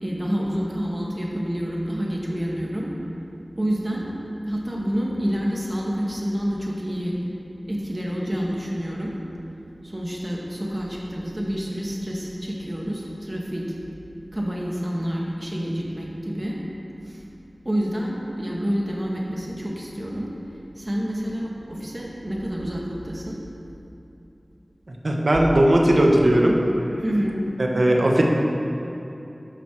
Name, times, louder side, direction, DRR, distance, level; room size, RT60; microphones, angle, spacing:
voice 1, 0.0-2.9 3.6-4.1 4.5-7.2 7.6-9.1 9.8-13.7 14.3-16.6 17.0-17.2 17.7-20.3 20.8-23.4 27.0-27.3, equal, 35° right, -3 dB, 1.9 m, -28 dB
voice 2, 25.0-26.6 27.7-28.2, right 1 dB, 70° right, 0 dB, 1.1 m, -17 dB
11.5 x 6.0 x 4.6 m, 3.0 s
wide cardioid pair, 40°, 0 cm